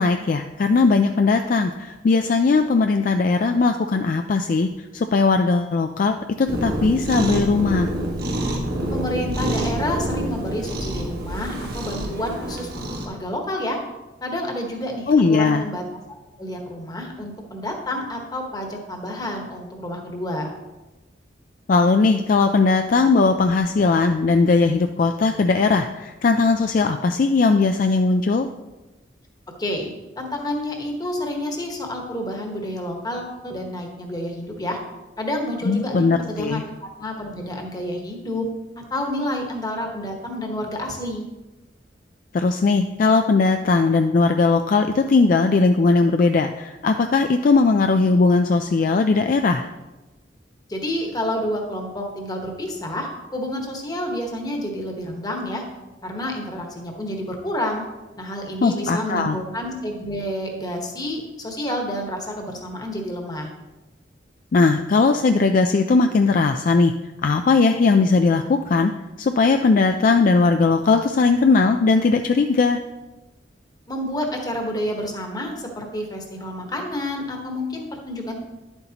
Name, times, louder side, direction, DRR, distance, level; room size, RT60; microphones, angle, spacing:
voice 1, 0.0-7.9 15.1-15.6 21.7-28.5 35.7-36.6 42.3-49.7 58.6-59.4 64.5-66.9 67.2-68.9 69.2-72.8, left 4 dB, 45° left, 6 dB, 0.3 m, -19 dB
Cat, 6.5-13.1, right 1 dB, 55° right, 1.4 m, -27 dB
voice 2, 8.9-13.8 14.2-15.8 16.4-20.5 29.6-29.9 30.2-34.8 35.2-36.7 37.0-38.5 38.9-41.3 50.7-55.6 56.0-57.8 58.2-63.5 73.9-78.4, left 1 dB, 20° left, 2 dB, 1.2 m, -29 dB
10.5 x 7.9 x 2.9 m, 1.1 s
head